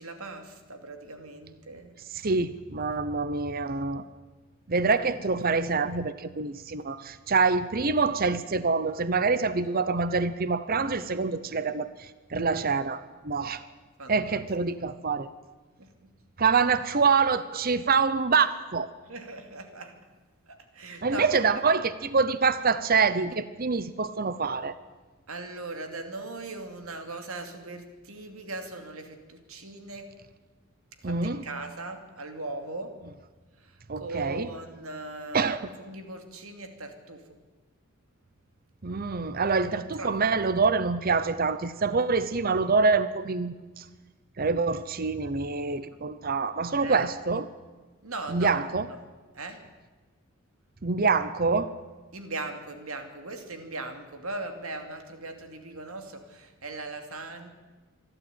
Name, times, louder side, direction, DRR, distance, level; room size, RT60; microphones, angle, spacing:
voice 1, 0.0-1.9 14.0-14.4 15.8-16.1 19.1-20.1 20.5-21.8 25.3-30.1 31.0-33.0 33.6-37.3 40.0-40.2 46.8-47.1 48.0-49.0 49.3-49.6 52.1-57.5, right 2 dB, 80° right, 6 dB, 2.6 m, -39 dB
voice 2, 2.2-4.0 4.7-13.6 14.1-15.3 16.4-18.9 21.0-24.7 31.0-31.4 33.9-34.5 35.3-35.6 38.8-43.8 44.4-47.4 48.3-48.8 50.8-51.7, right 4 dB, 45° right, 14 dB, 0.8 m, -26 dB
26.0 x 12.0 x 9.1 m, 1.3 s
head